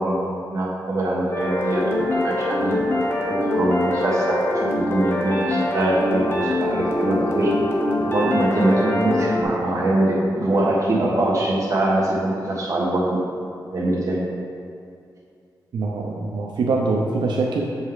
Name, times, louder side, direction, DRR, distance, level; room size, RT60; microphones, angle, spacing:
voice 1, 0.0-2.8 3.2-7.6 8.0-13.2 13.7-14.2, right 1 dB, 45° right, -5 dB, 1.4 m, -23 dB
sound 1, 1.3-9.4, left 1 dB, 30° left, 0.9 m, -23 dB
voice 2, 15.7-17.8, right 3 dB, 85° right, -1 dB, 0.5 m, -23 dB
7.2 x 5.2 x 3.9 m, 2.4 s
wide cardioid pair, 160°, 8 cm